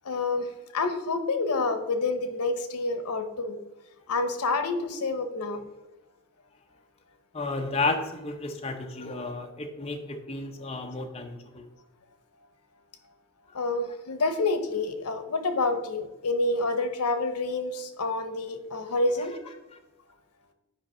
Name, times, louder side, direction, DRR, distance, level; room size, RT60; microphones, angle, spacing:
voice 1, 0.0-3.6 4.1-5.7 13.5-19.5, left 3 dB, 85° left, 9 dB, 0.8 m, -28 dB
voice 2, 7.3-11.7, left 3 dB, 25° left, 3 dB, 0.6 m, -32 dB
9.1 x 5.1 x 4.3 m, 1.0 s
head